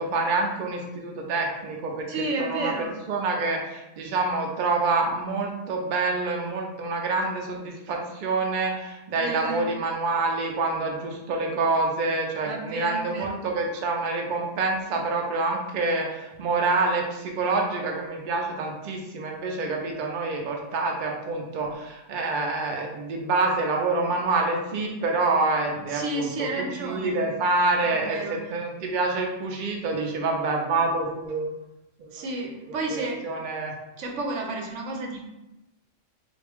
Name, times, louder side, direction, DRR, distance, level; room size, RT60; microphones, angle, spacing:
voice 1, 0.0-2.1 2.4-2.7 3.1-31.5 32.0-32.2 32.6-33.7, right 3 dB, 55° right, 1 dB, 0.6 m, -27 dB
voice 2, 2.1-2.9 9.1-9.7 12.4-13.4 25.9-27.2 27.8-28.4 32.1-33.2 34.0-35.2, right 2 dB, 75° right, 1 dB, 1.0 m, -31 dB
3.4 x 2.5 x 3.4 m, 0.94 s
omnidirectional pair, 1.3 m